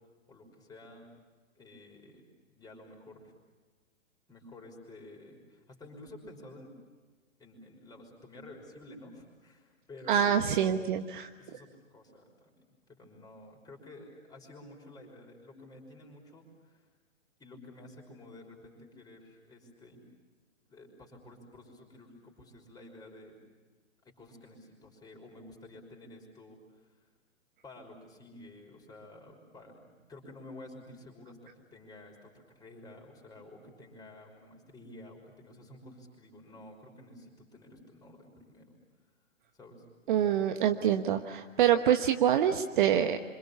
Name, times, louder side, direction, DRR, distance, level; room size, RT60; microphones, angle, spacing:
voice 1, 0.3-1.1 1.5-2.2 2.5-3.3 4.3-6.7 7.4-10.9 11.4-16.9 17.4-20.0 20.7-23.4 24.0-27.0 27.6-38.7 39.5-39.9, left 2 dB, 10° left, 1 dB, 5.8 m, -51 dB
voice 2, 10.1-11.3 40.1-43.2, right 9 dB, 40° right, 7 dB, 1.2 m, -26 dB
27.5 x 26.0 x 7.1 m, 1.4 s
figure-of-eight pair, 125°, 38 cm